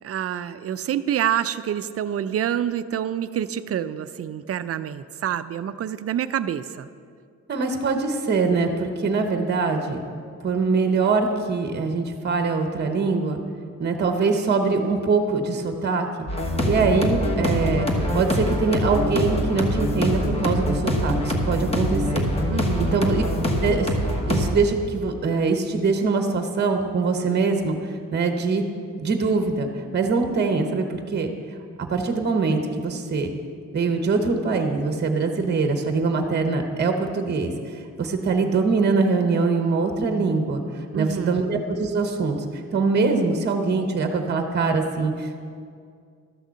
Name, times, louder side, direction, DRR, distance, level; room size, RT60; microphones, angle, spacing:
voice 1, 0.0-6.9 22.5-23.1 40.9-41.5, right 10 dB, 50° right, 13 dB, 0.4 m, -27 dB
voice 2, 7.5-10.0 10.4-13.4 13.8-16.1 16.6-17.9 18.1-22.3 22.8-23.2 23.6-23.9 24.2-29.7 29.9-31.3 31.8-33.3 33.7-40.6 41.0-42.4 42.7-45.4, right 4 dB, 35° right, 5 dB, 0.9 m, -23 dB
sound 1, 16.3-24.5, equal, 20° left, 1.2 m, -24 dB
12.5 x 6.5 x 7.4 m, 2.2 s
wide cardioid pair, 170°, 32 cm